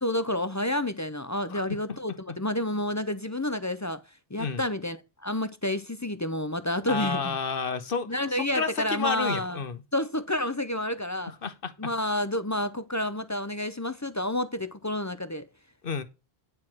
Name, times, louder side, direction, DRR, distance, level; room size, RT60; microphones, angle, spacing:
voice 1, 0.0-4.0 4.3-5.0 5.2-7.4 8.1-9.6 9.9-11.3 11.8-15.5, left 1 dB, 20° left, 0.5 m, -29 dB
voice 2, 6.9-9.8 11.4-11.7 15.8-16.0, left 5 dB, 60° left, 1.2 m, -30 dB
9.6 x 4.6 x 6.0 m
omnidirectional pair, 1.1 m